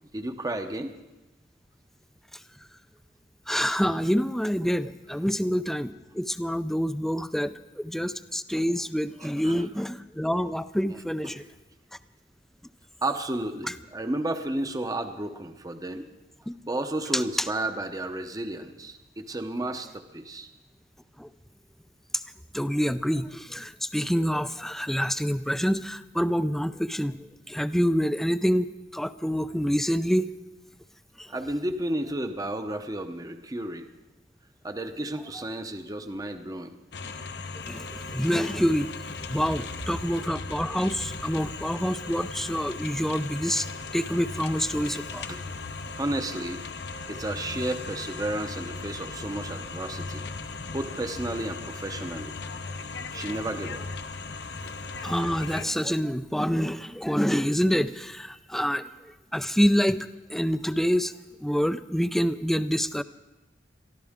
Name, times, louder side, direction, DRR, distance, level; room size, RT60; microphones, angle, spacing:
voice 1, 0.1-0.9 9.4-9.5 10.9-11.4 13.0-16.1 16.6-20.5 31.3-33.9 34.6-36.7 45.3-45.4 46.0-46.6 47.1-50.2 50.7-52.3 53.1-53.8, right 1 dB, 20° right, 7 dB, 0.8 m, -32 dB
voice 2, 3.5-11.4 13.6-13.7 16.5-16.6 17.1-17.5 21.2-21.3 22.1-22.2 22.5-30.3 31.2-31.3 37.7-38.9 39.3-45.3 55.0-58.9 59.3-61.1 61.4-63.0, equal, ahead, 12 dB, 0.4 m, -27 dB
sound 1, 36.9-55.6, left 4 dB, 70° left, 0.8 m, -37 dB
23.0 x 14.0 x 3.6 m, 1.1 s
head